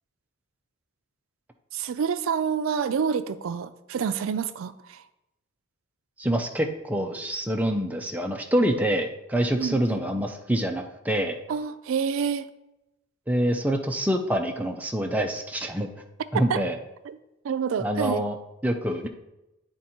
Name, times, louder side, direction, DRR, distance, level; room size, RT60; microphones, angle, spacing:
voice 1, 1.7-5.0 9.6-10.0 11.5-12.5 16.3-16.6 17.0-17.2 17.4-18.3, right 7 dB, 85° right, 13 dB, 0.4 m, -28 dB
voice 2, 6.2-11.4 13.3-15.9 16.3-16.8 17.8-18.4 18.6-19.1, right 1 dB, 10° right, 3 dB, 0.5 m, -26 dB
9.1 x 3.6 x 4.3 m, 0.93 s
head